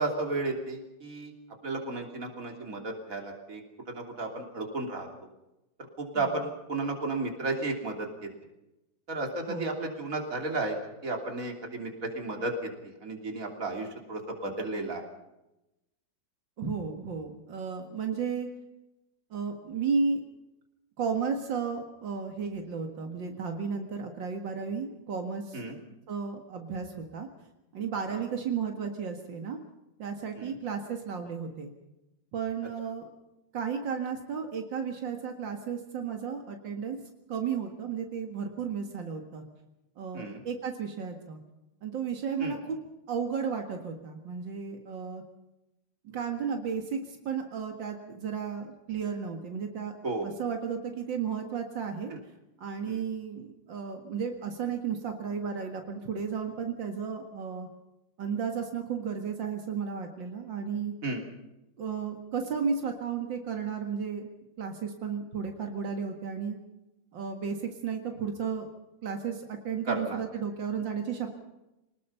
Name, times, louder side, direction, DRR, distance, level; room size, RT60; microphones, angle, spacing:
voice 1, 0.0-1.3 1.6-3.6 3.9-5.1 6.0-8.1 9.1-10.8 11.0-12.5 12.8-15.0 25.5-25.8 28.1-28.2 30.4-30.6 40.1-40.4 42.4-42.6 50.0-50.3 52.1-52.2 52.9-53.0 61.0-61.2 69.9-70.2, right 2 dB, 45° right, 2 dB, 3.6 m, -33 dB
voice 2, 16.6-18.5 19.3-20.2 21.0-25.6 26.1-27.3 27.7-29.6 30.0-31.7 32.3-33.1 33.5-37.0 37.3-39.4 40.0-41.4 41.8-42.8 43.1-45.2 46.0-49.9 50.2-52.1 52.6-57.7 58.2-60.9 61.8-64.3 64.6-66.6 67.1-68.7 69.0-71.3, right 6 dB, 85° right, 4 dB, 2.5 m, -33 dB
25.5 x 19.5 x 5.7 m, 0.94 s
omnidirectional pair, 2.0 m